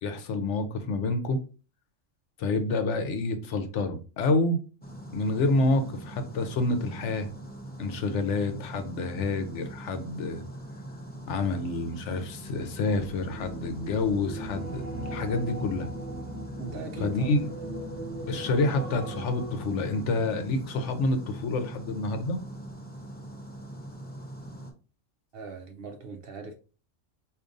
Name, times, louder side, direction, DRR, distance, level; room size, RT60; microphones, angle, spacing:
voice 1, 0.0-1.4 2.4-4.6 5.1-7.3 7.8-10.4 11.3-15.9 17.0-17.4 18.3-22.4, left 2 dB, 70° left, 0.9 m, -28 dB
sound 1, 4.8-24.7, right 1 dB, 15° left, 0.3 m, -42 dB
sound 2, 12.5-21.8 22.1-22.5, right 1 dB, 35° right, 1.0 m, -40 dB
voice 2, 16.6-17.4 25.3-26.5, right 3 dB, 60° right, 0.7 m, -39 dB
5.0 x 2.6 x 2.5 m
omnidirectional pair, 1.3 m